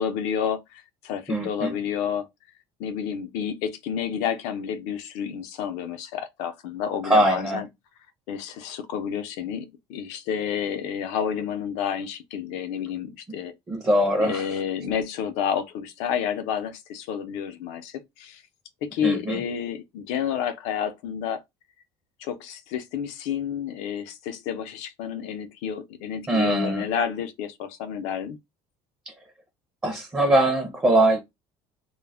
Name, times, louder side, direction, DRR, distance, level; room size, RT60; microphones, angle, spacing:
voice 1, 0.0-2.3 2.8-7.7 8.3-13.5 14.2-18.4 18.8-21.4 22.2-28.4, left 8 dB, 80° left, 0.5 m, -30 dB
voice 2, 1.3-1.8 7.0-7.7 13.7-14.5 19.0-19.4 26.3-26.9 29.1-29.2 29.8-31.2, right 1 dB, 15° right, 0.5 m, -22 dB
2.2 x 2.0 x 3.3 m
cardioid pair, 165°, 11 cm